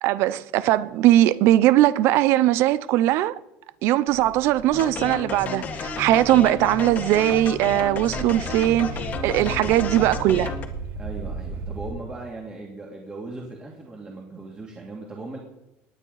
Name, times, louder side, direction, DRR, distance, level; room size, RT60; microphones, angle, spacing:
voice 1, 0.0-3.4 3.8-10.5, right 14 dB, 65° right, 0.6 m, -20 dB
sound 1, 4.1-11.9, right 4 dB, 45° right, 5.3 m, -36 dB
sound 2, 4.7-10.7, left 5 dB, 40° left, 1.8 m, -32 dB
voice 2, 11.0-15.4, right 2 dB, 20° right, 2.6 m, -38 dB
19.5 x 9.2 x 4.0 m
cardioid pair, 135°, 5 cm